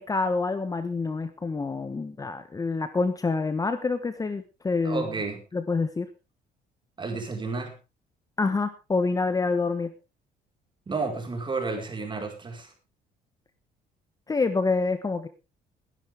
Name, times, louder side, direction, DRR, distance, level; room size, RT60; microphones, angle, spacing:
voice 1, 0.0-5.1 5.5-6.1 8.4-9.9 14.3-15.3, left 3 dB, 20° left, 10 dB, 1.2 m, -27 dB
voice 2, 4.8-5.4 7.0-7.7 10.9-12.7, right 4 dB, 30° right, 4 dB, 4.9 m, -31 dB
20.5 x 10.5 x 3.6 m, 0.29 s
cardioid pair, 110°, 17 cm